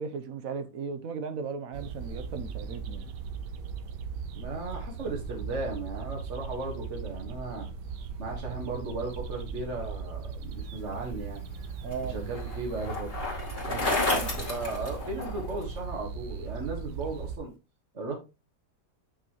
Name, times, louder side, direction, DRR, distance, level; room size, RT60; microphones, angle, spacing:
voice 1, 0.0-3.1 11.8-12.2 13.7-14.0, right 5 dB, 60° right, 1.2 m, -36 dB
sound 1, 1.7-17.4, right 5 dB, 85° right, 1.4 m, -38 dB
voice 2, 4.3-7.7 8.2-11.4 12.0-13.1 14.0-17.5 17.9-18.2, right 3 dB, 45° right, 1.8 m, -36 dB
Bicycle, 11.2-15.6, left 3 dB, 35° left, 2.7 m, -32 dB
7.8 x 6.3 x 3.0 m
omnidirectional pair, 1.8 m